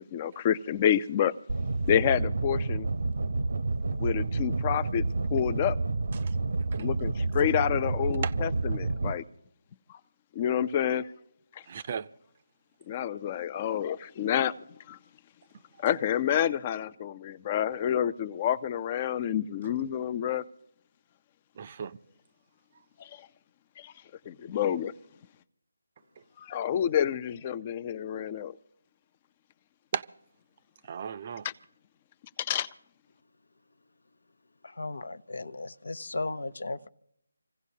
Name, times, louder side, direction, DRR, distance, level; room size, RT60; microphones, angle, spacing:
voice 1, 0.0-1.3 1.9-2.9 4.0-5.0 5.3-5.8 6.8-9.2 10.4-11.1 12.9-14.5 14.9-15.0 15.8-20.4 23.0-23.2 23.8-23.9 24.3-24.9 26.4-28.5 32.4-32.7, left 10 dB, 25° left, 0.5 m, -28 dB
sound 1, 1.5-9.1, right 3 dB, 65° right, 0.8 m, -29 dB
voice 2, 11.7-12.1 21.6-22.0 29.9-30.0 30.8-31.5, right 7 dB, 35° right, 0.6 m, -35 dB
voice 3, 34.6-36.9, left 2 dB, 70° left, 0.7 m, -36 dB
27.0 x 16.0 x 2.8 m
figure-of-eight pair, 160°, 0 cm